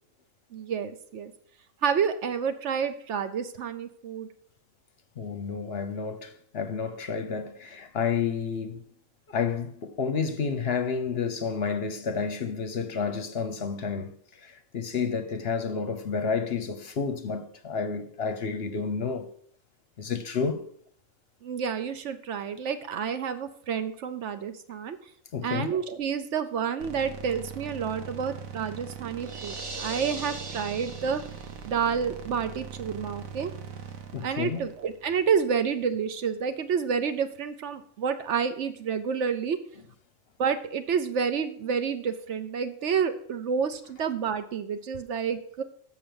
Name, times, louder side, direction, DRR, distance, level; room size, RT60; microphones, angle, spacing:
voice 1, 0.5-1.3 1.8-4.3 21.4-25.0 25.4-31.2 31.7-33.5 34.2-39.6 40.4-45.6, right 6 dB, 65° right, 1.0 m, -29 dB
voice 2, 5.2-8.8 9.3-19.3 20.0-20.6 25.3-25.7 34.1-34.6, left 5 dB, 55° left, 0.9 m, -30 dB
sound 1, 26.8-36.0, right 7 dB, 85° right, 1.3 m, -42 dB
sound 2, 29.2-31.7, right 3 dB, 25° right, 0.8 m, -39 dB
7.6 x 5.7 x 6.9 m
omnidirectional pair, 1.4 m